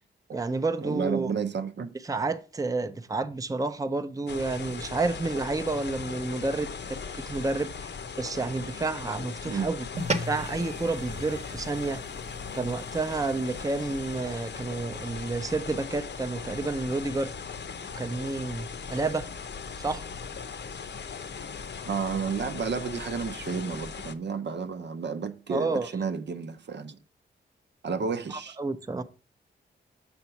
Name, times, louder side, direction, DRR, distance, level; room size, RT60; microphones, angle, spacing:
voice 1, 0.3-1.3 2.0-7.9 8.2-9.8 10.1-12.0 12.5-17.3 18.0-19.3 19.8-20.0 25.5-25.9 28.3-29.0, right 3 dB, 15° right, 0.6 m, -30 dB
voice 2, 0.8-1.9 9.4-9.7 21.9-27.0 27.8-28.6, right 5 dB, 65° right, 0.7 m, -31 dB
well water surge sewer nearby, 4.3-24.1, left 5 dB, 65° left, 0.8 m, -39 dB
sound 1, 9.9-14.6, right 1 dB, 35° right, 1.0 m, -37 dB
6.9 x 4.4 x 5.7 m
wide cardioid pair, 85°, 20 cm